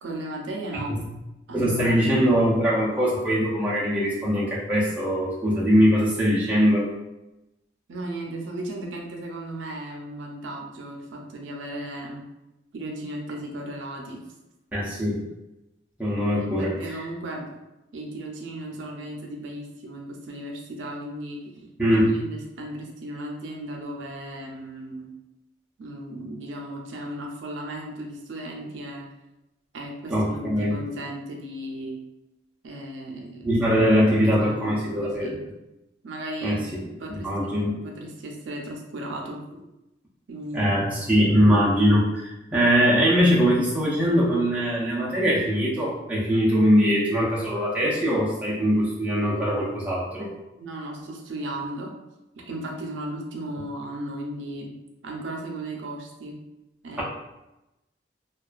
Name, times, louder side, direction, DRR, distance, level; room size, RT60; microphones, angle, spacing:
voice 1, 0.0-1.0 1.5-2.2 7.9-12.2 12.7-14.2 16.3-17.5 17.9-21.4 21.9-25.1 25.8-29.1 29.7-32.0 32.6-33.5 34.4-35.4 36.0-39.4 40.3-40.9 50.6-51.9 52.4-54.7 55.0-56.4 56.8-57.0, right 1 dB, 85° right, 0 dB, 0.5 m, -36 dB
voice 2, 1.5-6.9 14.7-15.2 16.0-16.8 21.8-22.2 30.1-30.8 33.4-35.3 36.4-36.8 37.1-37.7 40.5-50.3 57.0-57.1, equal, 10° right, -7 dB, 0.4 m, -22 dB
2.3 x 2.2 x 2.3 m, 0.96 s
head